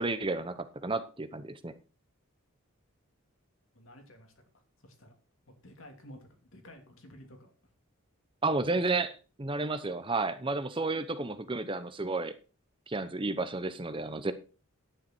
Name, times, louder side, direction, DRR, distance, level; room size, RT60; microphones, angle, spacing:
voice 1, 0.0-1.7 8.4-12.3 12.9-14.3, right 3 dB, 25° right, 11 dB, 0.8 m, -32 dB
voice 2, 3.7-4.3 4.8-5.1 5.6-6.2 6.5-7.5, equal, 65° left, 4 dB, 2.8 m, -51 dB
10.0 x 9.4 x 4.4 m, 0.34 s
head